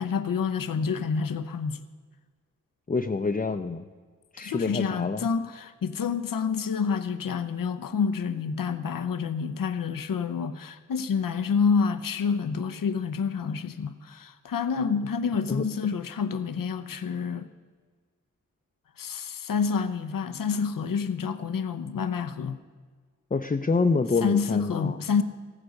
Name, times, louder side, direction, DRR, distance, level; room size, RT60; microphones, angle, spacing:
voice 1, 0.0-1.8 4.4-17.5 19.0-22.6 24.2-25.2, left 6 dB, 80° left, 11 dB, 0.7 m, -28 dB
voice 2, 2.9-3.9 4.3-5.3 15.5-15.6 23.3-25.0, left 4 dB, 25° left, 5 dB, 0.6 m, -26 dB
15.0 x 9.8 x 6.5 m, 1.5 s
cardioid pair, 60°, 33 cm